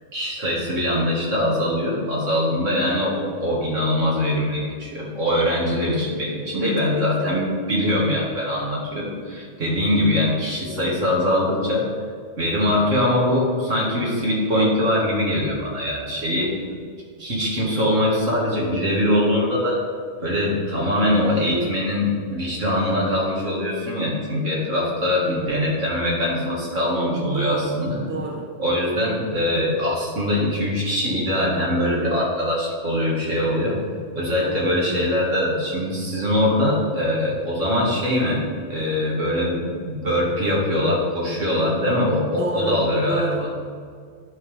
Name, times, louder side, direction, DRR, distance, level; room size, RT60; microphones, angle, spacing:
voice 1, 0.1-11.8 12.4-16.6 17.2-19.8 20.2-28.0 28.6-33.8 34.1-38.4 38.7-43.5, left 1 dB, 65° right, -4 dB, 2.2 m, -22 dB
voice 2, 6.6-7.4 9.6-9.9 25.2-25.6 27.3-27.8 28.1-28.5 34.4-34.7 42.4-43.5, right 1 dB, 10° right, 0 dB, 0.6 m, -30 dB
10.5 x 5.5 x 3.5 m, 2.1 s
omnidirectional pair, 1.4 m